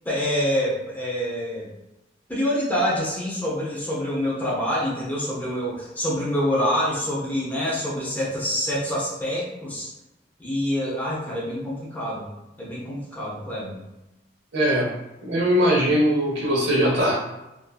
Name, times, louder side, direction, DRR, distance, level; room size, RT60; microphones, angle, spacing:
voice 1, 0.0-1.7 2.3-9.9 10.4-12.2 12.6-13.8, equal, 10° left, -7 dB, 0.6 m, -26 dB
voice 2, 14.5-14.9 15.2-17.1, equal, 80° right, -4 dB, 0.9 m, -20 dB
2.6 x 2.5 x 2.3 m, 0.95 s
head